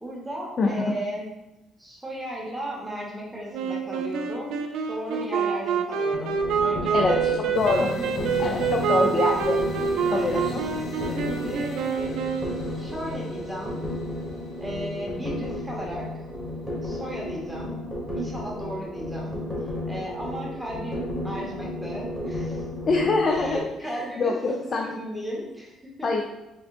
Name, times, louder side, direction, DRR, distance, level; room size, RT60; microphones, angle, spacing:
voice 1, 0.0-1.2 1.8-9.0 9.8-12.3 12.8-13.9 14.6-16.1 16.8-17.8 18.1-19.4 19.8-22.6 22.9-23.0 23.3-26.1, equal, 5° right, -4 dB, 1.1 m, -36 dB
voice 2, 0.6-0.9 6.9-7.9 8.4-9.6 10.1-10.6 22.9-24.9 26.0-26.2, left 3 dB, 45° left, 1 dB, 0.4 m, -25 dB
Wind instrument woodwind instrument, 3.5-13.0, right 6 dB, 80° right, 0.4 m, -27 dB
sound 1, 6.1-23.6, left 1 dB, 10° left, 1.4 m, -34 dB
sound 2, 7.5-16.3, left 1 dB, 65° left, 0.9 m, -38 dB
3.7 x 3.5 x 2.5 m, 0.97 s
cardioid pair, 90°, 0 cm